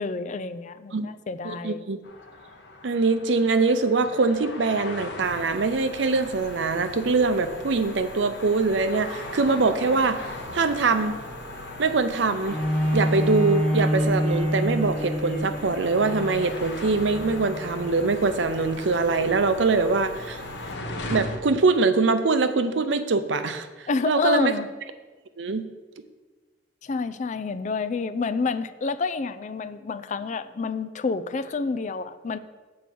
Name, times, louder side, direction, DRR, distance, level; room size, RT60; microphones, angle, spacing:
voice 1, 0.0-1.8 23.9-24.7 26.8-32.4, left 4 dB, 40° left, 11 dB, 0.4 m, -28 dB
voice 2, 1.4-2.0 2.8-10.3 10.5-11.2 11.8-12.6 12.9-20.4 21.1-24.5 25.4-25.7, right 3 dB, 80° right, 10 dB, 0.6 m, -23 dB
sound 1, 2.0-21.4, left 2 dB, 70° left, 1.0 m, -39 dB
sound 2, 5.2-20.8, right 1 dB, 45° right, 1.0 m, -47 dB
Bowed string instrument, 12.5-18.1 18.7-18.8, equal, 10° left, 2.0 m, -27 dB
7.5 x 4.7 x 6.9 m, 1.3 s
head